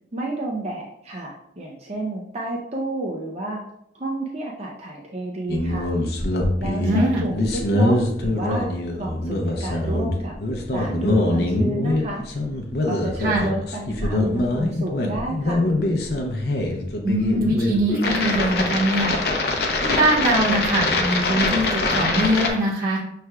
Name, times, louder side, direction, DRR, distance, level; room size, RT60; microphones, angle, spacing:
voice 1, 0.1-3.6 3.9-5.9 6.6-10.3 10.7-12.3 12.9-15.7, right 1 dB, 35° right, -2 dB, 0.5 m, -31 dB
sound 1, 5.5-22.5, left 2 dB, 55° left, 0.6 m, -23 dB
voice 2, 6.8-7.3 13.2-13.5 17.0-19.1 19.8-23.0, right 1 dB, 55° right, -8 dB, 1.1 m, -22 dB
6.0 x 3.3 x 2.2 m, 0.74 s
head